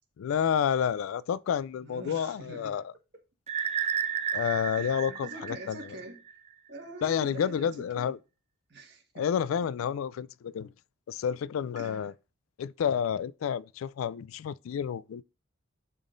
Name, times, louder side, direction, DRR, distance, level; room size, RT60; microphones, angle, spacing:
voice 1, 0.2-2.8 4.3-5.8 7.0-8.2 9.2-10.7 11.1-12.1 12.6-15.2, left 8 dB, 90° left, 0.3 m, -30 dB
voice 2, 1.8-2.8 4.7-6.2 6.7-8.1 8.7-9.3 11.8-12.1, right 2 dB, 55° right, 1.5 m, -45 dB
sound 1, 3.5-6.3, right 8 dB, 30° right, 0.3 m, -32 dB
10.5 x 3.6 x 2.5 m
head